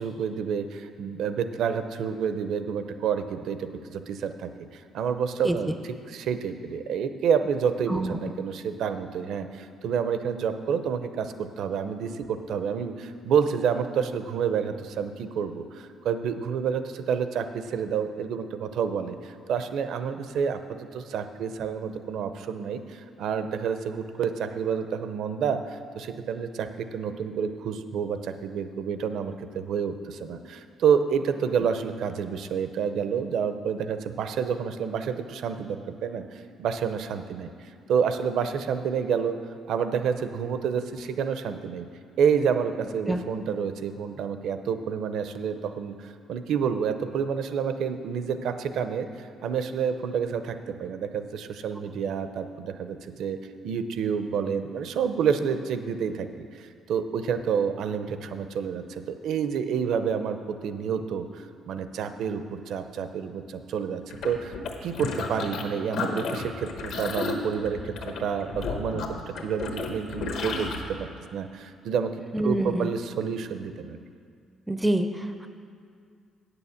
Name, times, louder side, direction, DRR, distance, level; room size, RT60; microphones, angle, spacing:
voice 1, 0.0-36.2 36.6-37.5 37.9-39.4 39.7-41.9 42.2-53.4 53.6-64.5 64.8-72.1 72.4-74.0, right 7 dB, 70° right, 9 dB, 0.6 m, -29 dB
sound 1, 64.1-65.6 65.9-70.8, left 4 dB, 70° left, 1.1 m, -32 dB
voice 2, 72.3-72.9 74.7-75.5, right 1 dB, 5° right, 7 dB, 0.4 m, -26 dB
8.8 x 6.9 x 7.1 m, 2.3 s
cardioid pair, 145°, 0 cm